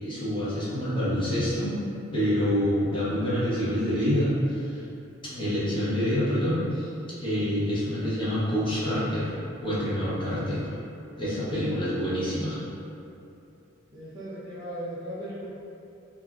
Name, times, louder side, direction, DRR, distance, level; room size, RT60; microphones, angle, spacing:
voice 1, 0.0-1.7 2.1-4.6 5.2-6.9 7.2-9.3 9.6-10.6 11.2-12.6, equal, 25° left, -10 dB, 0.7 m, -26 dB
voice 2, 13.9-15.4, equal, 20° right, -9 dB, 0.4 m, -37 dB
3.0 x 2.4 x 2.3 m, 2.7 s
head